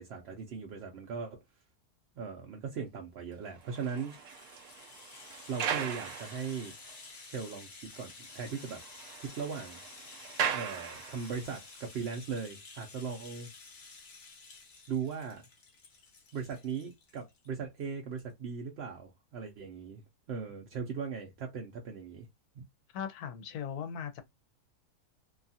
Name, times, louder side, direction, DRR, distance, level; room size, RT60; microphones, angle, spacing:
voice 1, 0.0-1.4 2.2-4.2 5.5-6.8 7.3-7.7 8.0-8.8 9.2-9.8 10.5-13.5 14.9-15.4 16.3-20.0 20.3-22.3 22.5-22.6, right 6 dB, 65° right, 0.6 m, -38 dB
Rattle (instrument), 3.3-17.5 17.8-17.9 18.2-18.3, left 4 dB, 50° left, 1.0 m, -52 dB
sound 1, 3.5-7.0 7.5-7.6 7.9-8.0 8.3-11.6, right 8 dB, 80° right, 1.1 m, -39 dB
voice 2, 22.9-24.2, left 7 dB, 80° left, 1.1 m, -38 dB
2.8 x 2.3 x 2.6 m
omnidirectional pair, 1.6 m